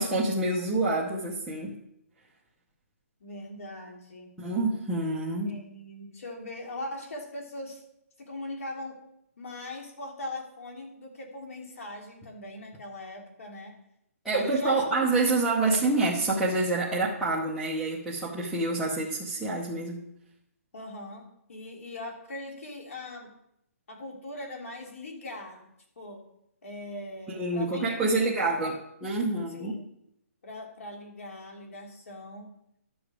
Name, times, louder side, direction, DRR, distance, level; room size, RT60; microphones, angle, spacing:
voice 1, 0.0-1.8 4.4-5.5 14.2-20.0 27.3-29.7, right 2 dB, ahead, -9 dB, 0.7 m, -27 dB
voice 2, 3.2-4.4 5.4-7.8 8.2-9.0 9.4-13.7 14.3-15.1 15.4-16.0 20.7-23.3 23.9-25.7 26.0-26.2 26.6-28.6 29.5-29.9 30.4-32.5, left 1 dB, 60° left, 1 dB, 2.9 m, -40 dB
12.0 x 7.0 x 4.8 m, 0.77 s
hypercardioid pair, 175°, 8 cm